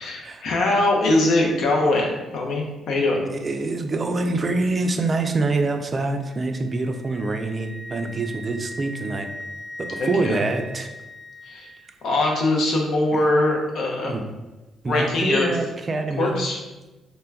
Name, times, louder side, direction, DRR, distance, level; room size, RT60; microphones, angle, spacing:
voice 1, 0.0-3.2 10.0-10.4 11.4-11.7 12.0-14.1 14.9-15.5 16.2-16.6, left 2 dB, 70° left, 0 dB, 0.6 m, -22 dB
voice 2, 3.3-9.3 9.8-10.9 13.1-13.2 14.0-14.2 14.8-16.4, right 3 dB, 35° right, 5 dB, 0.3 m, -25 dB
Wind instrument woodwind instrument, 6.2-12.2, equal, 40° left, 0.8 m, -39 dB
2.2 x 2.1 x 3.4 m, 1.1 s
cardioid pair, 90°, 0 cm